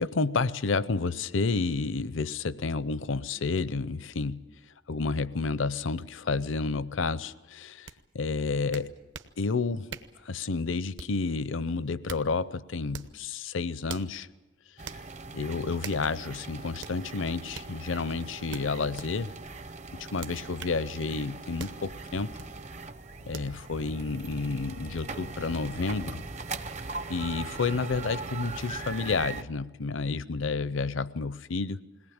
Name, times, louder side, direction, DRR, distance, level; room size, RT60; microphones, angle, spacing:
voice 1, 0.0-4.5 4.9-7.9 8.1-8.9 9.4-9.9 10.2-14.3 15.3-19.3 20.0-22.4 23.3-26.2 27.1-31.8, left 4 dB, 75° left, 17 dB, 0.6 m, -30 dB
sound 1, 7.9-8.0 8.7-9.3 9.9-10.2 11.0-11.3 11.8-12.3 12.9-13.2 13.9-14.1 14.9-15.0 15.8-16.1 16.8-17.0 17.5-17.7 18.5-19.1 20.2-20.8 21.6-21.8 22.4-22.5 23.3-23.5, right 5 dB, 60° right, 1.0 m, -42 dB
sound 2, 14.8-29.4, right 3 dB, 35° right, 0.7 m, -40 dB
21.0 x 18.5 x 8.8 m, 1.2 s
head